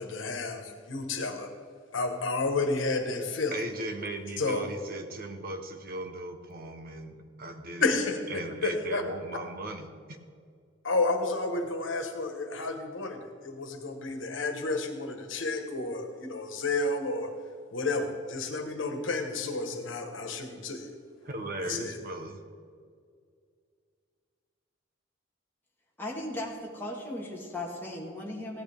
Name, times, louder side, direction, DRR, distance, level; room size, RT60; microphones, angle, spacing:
voice 1, 0.0-1.5 1.9-3.5 4.4-4.6 7.8-8.2 8.6-9.0 10.8-17.3 17.7-20.9 21.6-21.9, left 3 dB, 80° left, 5 dB, 1.4 m, -31 dB
voice 2, 3.5-7.9 8.3-10.2 21.2-22.4, right 1 dB, 50° right, 6 dB, 1.1 m, -37 dB
voice 3, 26.0-28.6, left 1 dB, 10° left, -3 dB, 1.6 m, -37 dB
15.5 x 11.0 x 3.6 m, 2.1 s
head